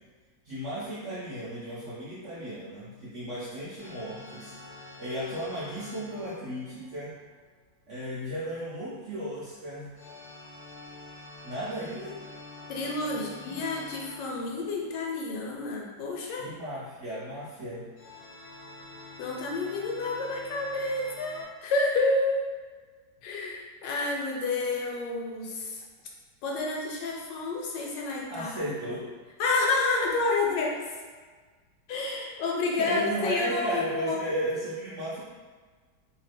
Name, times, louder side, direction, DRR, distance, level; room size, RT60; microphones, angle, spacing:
voice 1, 0.4-4.5 5.0-7.1 7.9-9.9 11.4-12.1 13.1-13.7 16.4-17.9 28.3-29.0 32.2-32.4 32.8-35.2, equal, 70° right, -9 dB, 0.7 m, -35 dB
sound 1, 3.8-7.6 10.0-15.4 18.0-21.4, left 2 dB, 55° left, 0.8 m, -47 dB
voice 2, 12.7-16.5 19.2-22.5 23.2-25.8 26.4-28.7 29.4-30.8 31.9-34.2, left 3 dB, 80° left, -1 dB, 1.2 m, -29 dB
3.0 x 2.1 x 3.3 m, 1.5 s
omnidirectional pair, 1.9 m